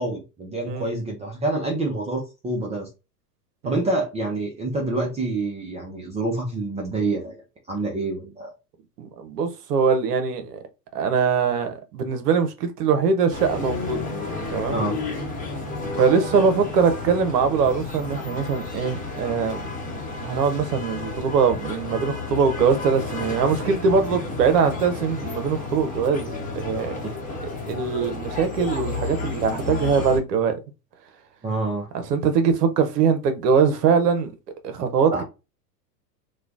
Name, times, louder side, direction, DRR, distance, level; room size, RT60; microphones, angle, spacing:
voice 1, 0.0-2.9 3.6-8.5 14.7-15.0 31.4-31.9 35.1-35.2, right 2 dB, 15° right, 0.5 m, -27 dB
voice 2, 9.0-10.6 10.9-14.0 14.5-14.8 16.0-19.7 20.2-27.0 27.7-30.6 31.9-34.3 34.6-35.2, right 6 dB, 70° right, 0.8 m, -22 dB
sound 1, 13.3-30.2, left 3 dB, 15° left, 0.9 m, -32 dB
3.1 x 2.2 x 2.4 m
hypercardioid pair, 105°, 49 cm